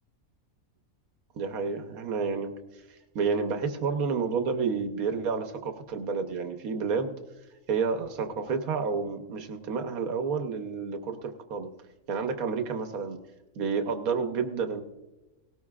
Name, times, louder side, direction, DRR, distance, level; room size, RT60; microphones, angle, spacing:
voice 1, 1.4-7.1 7.7-11.7 12.1-13.2 13.6-14.8, right 5 dB, 90° right, 6 dB, 1.4 m, -30 dB
18.5 x 18.0 x 2.4 m, 1.1 s
omnidirectional pair, 1.5 m